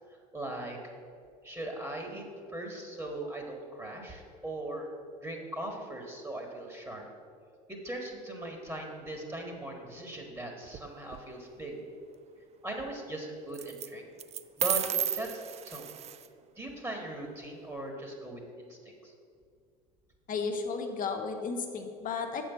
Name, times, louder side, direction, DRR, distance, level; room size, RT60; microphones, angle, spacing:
voice 1, 0.3-0.8 1.4-2.3 2.5-4.9 5.2-7.1 7.7-11.8 12.6-14.1 14.6-15.9 16.6-18.8 19.0-19.1, right 1 dB, 15° right, 2 dB, 1.6 m, -39 dB
sound 1, 10.7-11.2 13.5-13.9 14.2-16.3, right 9 dB, 35° right, 0.4 m, -33 dB
voice 2, 20.3-22.4, left 5 dB, 45° left, 3 dB, 1.1 m, -33 dB
7.1 x 5.5 x 7.3 m, 2.3 s
hypercardioid pair, 70°, 19 cm